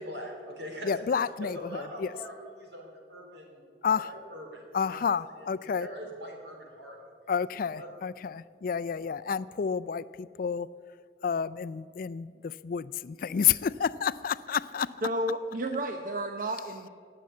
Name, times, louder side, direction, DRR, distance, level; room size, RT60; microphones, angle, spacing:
voice 1, 0.0-1.0 1.4-4.6 4.9-5.0 5.4-5.5 5.8-7.1 7.8-7.9, equal, 70° right, 1 dB, 3.5 m, -42 dB
voice 2, 0.8-2.2 3.8-4.1 4.7-5.9 7.3-10.7 11.2-14.9, left 7 dB, 50° left, 16 dB, 0.4 m, -30 dB
voice 3, 15.0-16.9, right 1 dB, 50° right, 5 dB, 0.8 m, -31 dB
18.5 x 7.7 x 8.4 m, 2.1 s
head